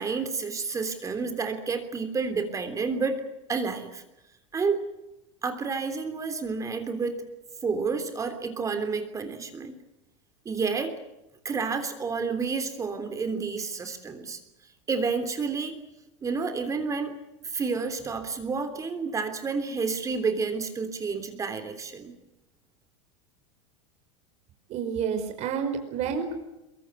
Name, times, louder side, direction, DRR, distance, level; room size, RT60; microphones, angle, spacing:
voice 1, 0.0-3.2 3.5-4.0 4.5-4.8 5.4-7.2 7.6-9.8 10.4-11.0 11.4-14.4 14.9-15.8 16.2-17.2 17.4-22.1, right 4 dB, 20° right, 8 dB, 3.3 m, -30 dB
voice 2, 24.7-26.3, right 7 dB, 50° right, 6 dB, 5.0 m, -29 dB
23.0 x 23.0 x 8.2 m, 0.93 s
supercardioid pair, 125°, 15 cm